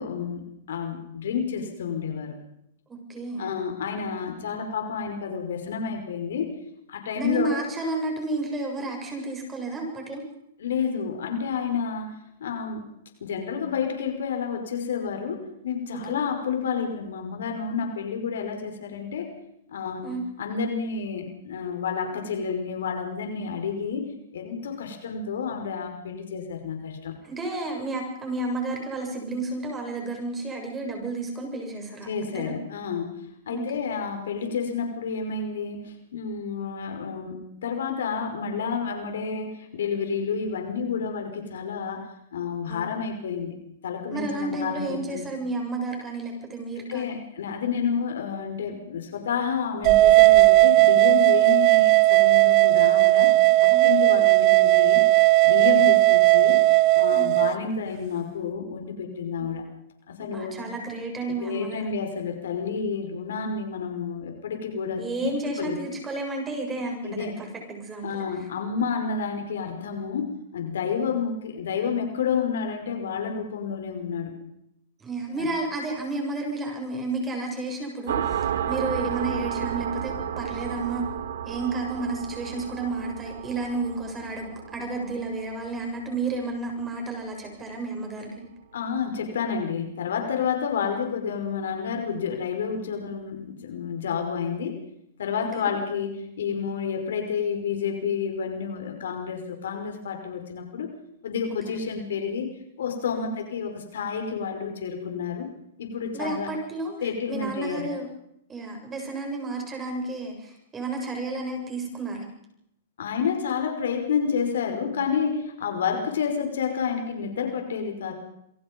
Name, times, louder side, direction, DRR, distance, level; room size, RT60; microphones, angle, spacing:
voice 1, 0.0-2.3 3.4-6.5 6.9-7.6 10.6-12.1 12.4-12.9 13.2-19.3 19.7-20.1 20.4-24.1 24.3-27.1 32.0-33.2 33.5-43.6 43.8-45.3 46.9-53.3 53.6-55.0 55.4-56.6 56.9-59.6 60.1-60.6 61.4-65.3 65.6-65.8 67.0-67.3 68.0-74.3 75.4-75.5 88.7-94.8 95.2-100.9 101.2-102.5 102.8-105.5 105.8-106.6 107.0-107.9 113.0-118.1, left 6 dB, 80° left, 5 dB, 5.5 m, -30 dB
voice 2, 3.1-3.5 7.1-10.2 16.1-16.2 20.0-20.2 27.2-32.5 33.5-33.8 42.7-43.0 44.1-47.2 53.7-53.9 55.9-56.0 57.1-57.3 59.4-59.5 60.2-61.9 65.0-68.2 75.0-81.1 81.5-88.5 95.6-95.7 101.7-101.8 103.1-103.3 106.1-108.1 108.5-112.3, right 2 dB, 15° right, 2 dB, 7.6 m, -32 dB
sound 1, 49.8-57.5, right 19 dB, 40° right, 1.0 m, -17 dB
sound 2, 78.1-87.3, right 9 dB, 75° right, 2.2 m, -32 dB
27.5 x 23.5 x 5.5 m, 0.79 s
hypercardioid pair, 145°, 0 cm